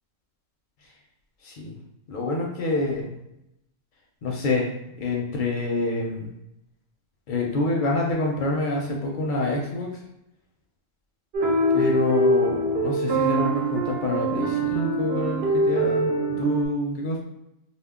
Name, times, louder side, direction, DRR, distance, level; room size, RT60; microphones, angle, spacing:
voice 1, 1.4-1.8 2.1-3.2 4.2-6.3 7.3-9.9 11.7-17.2, left 2 dB, 60° left, -1 dB, 0.6 m, -27 dB
sound 1, 11.3-16.7, right 1 dB, 70° right, 0.8 m, -23 dB
2.1 x 2.0 x 3.5 m, 0.85 s
omnidirectional pair, 1.1 m